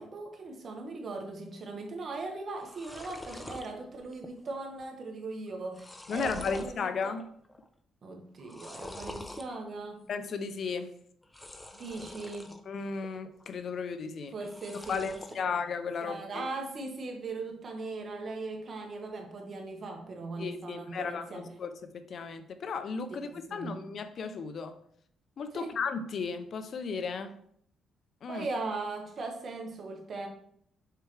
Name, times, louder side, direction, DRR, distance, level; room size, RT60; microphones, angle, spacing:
voice 1, 0.0-7.1 8.0-10.0 11.7-12.6 14.3-15.5 16.0-21.5 23.2-23.8 25.5-25.8 28.3-30.3, right 3 dB, 50° right, 2 dB, 1.5 m, -39 dB
sound 1, 2.1-2.2 2.5-3.7 4.1-4.5 4.8-4.9 5.5-6.8 7.2-7.7 8.4-9.5 11.2-12.6 13.0-13.6 14.4-15.4, left 1 dB, 15° left, 0.6 m, -46 dB
voice 2, 6.1-7.3 10.1-10.9 12.7-14.3 14.9-16.5 20.4-24.8 25.4-27.4 28.2-28.5, left 5 dB, 55° left, 10 dB, 0.5 m, -35 dB
6.6 x 4.6 x 3.2 m, 0.66 s
cardioid pair, 90°, 0 cm